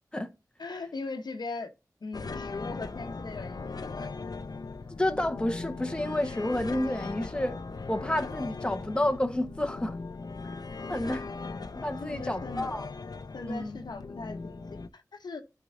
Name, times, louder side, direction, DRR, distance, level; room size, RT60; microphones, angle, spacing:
voice 1, 0.6-1.7 2.0-4.1 11.0-11.2 12.0-12.7 13.3-14.6 14.9-15.4, left 3 dB, 85° left, 1.0 m, -39 dB
sound 1, 2.1-14.9, left 3 dB, 65° left, 0.6 m, -39 dB
voice 2, 5.0-7.6 7.9-10.0 10.9-11.2 11.7-12.9 13.5-13.8, left 1 dB, 15° left, 1.1 m, -30 dB
11.5 x 4.6 x 2.6 m
wide cardioid pair, 65°, 7 cm